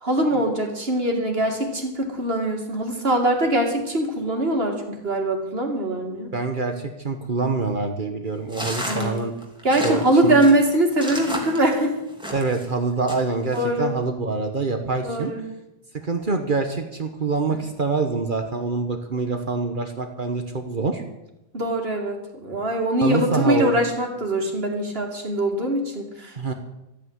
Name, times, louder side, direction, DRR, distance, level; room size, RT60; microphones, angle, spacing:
voice 1, 0.0-6.3 8.9-9.2 9.6-11.9 13.5-13.9 15.0-15.4 17.5-17.6 21.5-26.5, right 1 dB, 70° right, 2 dB, 2.9 m, -22 dB
voice 2, 6.3-9.3 9.8-10.4 12.3-15.3 15.9-21.0 23.0-23.8 26.3-26.5, right 4 dB, 55° right, 5 dB, 1.4 m, -25 dB
sound 1, 8.5-12.7 13.1-13.6, equal, 5° right, 2.9 m, -32 dB
13.5 x 9.3 x 9.7 m, 0.90 s
omnidirectional pair, 1.0 m